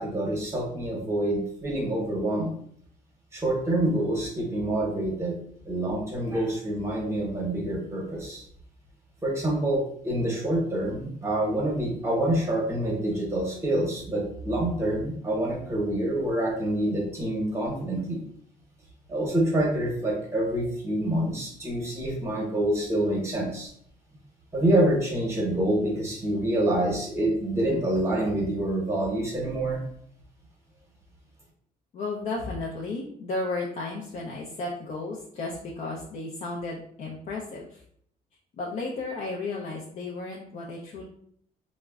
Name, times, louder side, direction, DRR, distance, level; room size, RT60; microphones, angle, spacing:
voice 1, 0.0-2.5 3.3-5.4 5.6-8.4 9.2-18.2 19.1-23.7 24.5-29.8, right 1 dB, 15° right, -2 dB, 0.9 m, -27 dB
voice 2, 31.9-37.8 38.6-41.0, left 3 dB, 45° left, -3 dB, 0.5 m, -33 dB
3.6 x 2.1 x 2.3 m, 0.64 s
cardioid pair, 130°, 16 cm